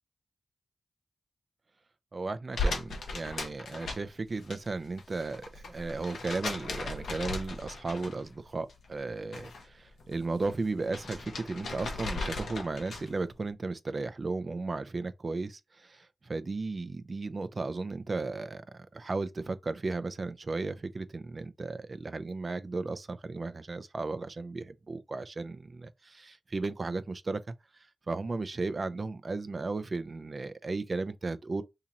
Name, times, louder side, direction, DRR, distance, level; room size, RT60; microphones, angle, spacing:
voice 1, 2.1-27.5 28.1-31.6, right 3 dB, 55° right, 0.4 m, -35 dB
sound 1, 2.5-4.6 4.9-8.4 8.7-9.6 10.0-13.2, left 3 dB, 90° left, 0.7 m, -37 dB
2.9 x 2.8 x 3.6 m
cardioid pair, 45°, 0 cm